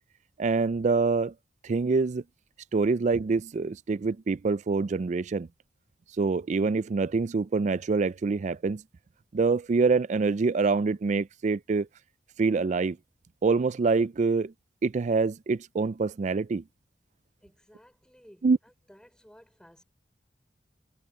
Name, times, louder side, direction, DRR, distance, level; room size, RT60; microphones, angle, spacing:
voice 1, 0.4-1.3 1.6-2.2 2.7-5.5 6.2-8.8 9.3-11.9 12.4-13.0 13.4-14.5 14.8-16.6 18.4-18.6, right 4 dB, 40° right, 0.4 m, -25 dB
voice 2, 17.4-19.8, equal, 5° left, 4.8 m, -56 dB
head